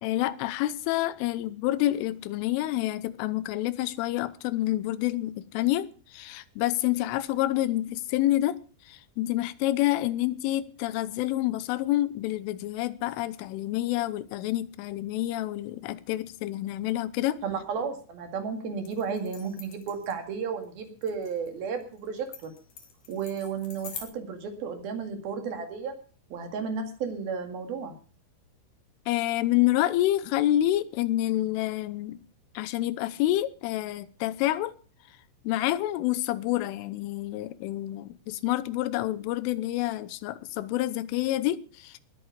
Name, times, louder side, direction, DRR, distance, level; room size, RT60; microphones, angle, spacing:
voice 1, 0.0-8.6 8.9-17.4 29.1-32.2 32.5-34.7 35.4-42.0, left 15 dB, 90° left, 3.4 m, -28 dB
voice 2, 17.4-22.5 23.1-25.9 26.3-27.9, right 6 dB, 60° right, 3.6 m, -33 dB
sound 1, 18.8-24.1, left 6 dB, 55° left, 4.2 m, -46 dB
20.5 x 9.0 x 5.1 m
omnidirectional pair, 5.5 m